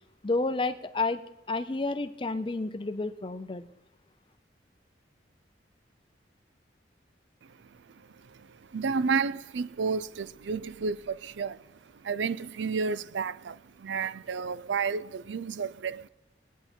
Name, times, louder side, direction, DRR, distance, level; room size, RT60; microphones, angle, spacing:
voice 1, 0.2-1.2 1.5-3.7, left 3 dB, 30° left, 0.5 m, -30 dB
voice 2, 7.4-11.7 11.9-16.1, right 5 dB, 80° right, 0.4 m, -32 dB
21.0 x 9.3 x 4.4 m
head